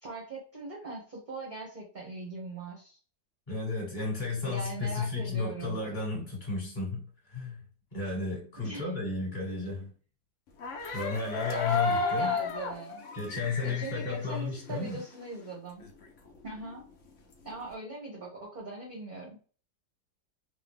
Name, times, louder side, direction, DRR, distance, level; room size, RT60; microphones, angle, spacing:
voice 1, 0.0-3.0 4.5-5.8 8.6-8.8 11.5-13.1 13.6-15.9 16.4-16.9 17.4-19.4, right 3 dB, 35° right, 0.9 m, -40 dB
voice 2, 3.5-7.6 7.9-9.9 10.8-12.3 13.1-15.0, left 3 dB, 25° left, 1.9 m, -33 dB
sound 1, 10.6-15.2 15.5-15.6 15.8-17.7, left 4 dB, 55° left, 0.9 m, -33 dB
3.7 x 2.4 x 3.5 m
omnidirectional pair, 2.0 m